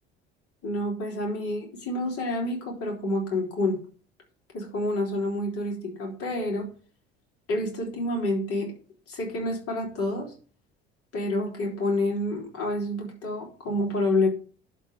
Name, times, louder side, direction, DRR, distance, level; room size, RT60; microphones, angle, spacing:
voice 1, 0.6-3.8 4.5-6.7 7.5-8.7 9.1-10.3 11.1-14.3, left 1 dB, 45° left, 0 dB, 3.9 m, -28 dB
11.0 x 3.8 x 7.6 m, 0.41 s
figure-of-eight pair, 60°, 32 cm